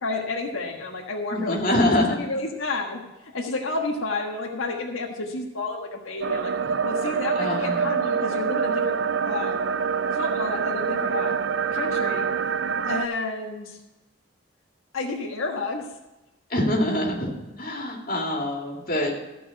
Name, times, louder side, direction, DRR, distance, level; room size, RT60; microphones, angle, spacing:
voice 1, 0.0-9.0 9.2-9.6 10.1-11.4 11.7-12.5 12.8-13.8 14.9-15.9, left 3 dB, 90° left, 0 dB, 1.4 m, -31 dB
voice 2, 1.3-2.2 7.4-7.9 16.5-17.3 17.6-19.2, left 1 dB, 45° left, -1 dB, 2.3 m, -24 dB
sound 1, 6.2-13.1, right 6 dB, 55° right, 0.4 m, -25 dB
14.0 x 5.4 x 7.7 m, 1.0 s
head